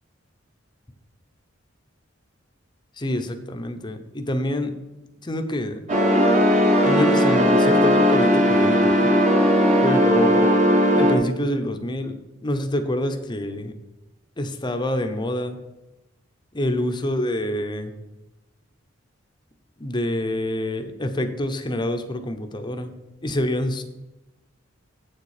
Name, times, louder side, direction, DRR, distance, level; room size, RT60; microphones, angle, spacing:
voice 1, 3.0-4.8 5.2-5.8 6.8-9.1 9.8-13.7 14.4-15.6 16.5-17.9 19.8-22.9 23.2-23.8, left 1 dB, 20° left, 7 dB, 0.8 m, -26 dB
sound 1, 5.9-11.1, equal, 40° right, 1.5 m, -17 dB
8.0 x 6.9 x 4.9 m, 0.99 s
head